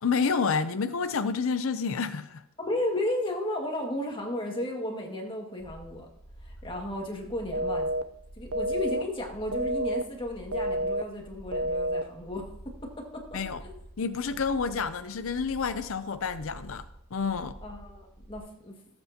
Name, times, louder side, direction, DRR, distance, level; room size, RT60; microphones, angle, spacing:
voice 1, 0.0-2.4 13.3-13.6 14.0-16.8 17.1-17.6, left 5 dB, 70° left, 0.5 m, -29 dB
voice 2, 2.6-6.1 6.4-7.9 8.4-13.8 17.6-18.8, left 1 dB, 25° left, 1.9 m, -34 dB
sound 1, 5.6-18.4, right 1 dB, 25° right, 4.3 m, -48 dB
sound 2, 7.5-8.0 8.5-9.0 9.5-10.0 10.5-11.0 11.5-12.0, right 1 dB, 85° right, 0.6 m, -28 dB
18.5 x 8.1 x 2.8 m
head